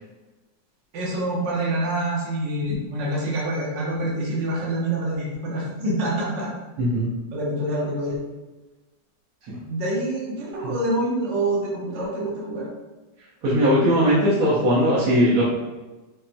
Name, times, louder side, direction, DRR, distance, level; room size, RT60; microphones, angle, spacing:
voice 1, 0.9-6.5 7.3-8.2 9.7-12.7, right 1 dB, 80° right, -5 dB, 1.5 m, -26 dB
voice 2, 6.8-7.1 9.5-9.6 10.6-10.7 13.4-15.4, equal, 55° right, -9 dB, 1.2 m, -19 dB
5.5 x 2.1 x 2.7 m, 1.1 s
omnidirectional pair, 2.0 m